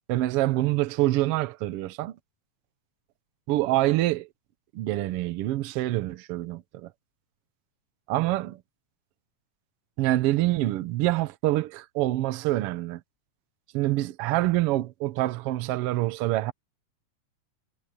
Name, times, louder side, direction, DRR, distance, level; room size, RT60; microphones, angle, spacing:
voice 1, 0.1-2.2 3.5-4.3 4.7-6.9 8.1-8.6 10.0-13.0 13.7-16.5, right 16 dB, 75° right, 1.4 m, -26 dB
omnidirectional pair, 3.5 m